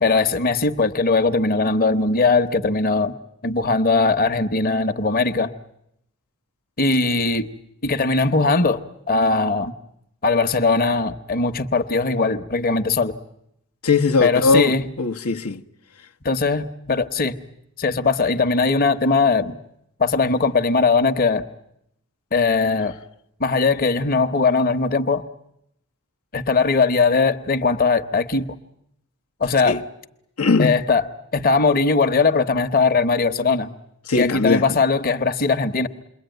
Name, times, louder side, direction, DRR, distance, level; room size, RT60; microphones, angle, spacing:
voice 1, 0.0-3.2 3.4-5.5 6.8-7.5 7.8-8.8 9.1-9.7 10.2-13.1 14.2-14.9 16.2-17.3 17.8-19.6 20.0-21.5 22.3-22.9 23.4-25.2 26.3-28.5 29.4-29.8 30.6-31.1 31.3-33.7 34.2-35.9, left 4 dB, 40° left, 1.0 m, -20 dB
voice 2, 13.8-15.6 29.6-29.8 30.4-30.8 34.1-34.6, left 4 dB, 90° left, 1.1 m, -19 dB
28.5 x 22.5 x 9.2 m
head